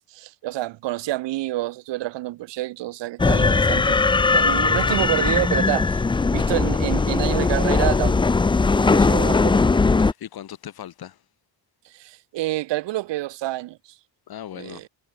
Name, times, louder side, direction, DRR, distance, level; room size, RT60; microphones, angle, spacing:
voice 1, 0.1-4.0 4.3-8.2 8.7-9.6 11.9-13.8 14.5-14.9, right 16 dB, 80° right, 0.7 m, -28 dB
sound 1, 3.2-10.1, left 4 dB, 10° left, 0.4 m, -19 dB
voice 2, 10.0-11.2 14.3-14.9, left 10 dB, 60° left, 2.2 m, -38 dB
wide cardioid pair, 160°, 43 cm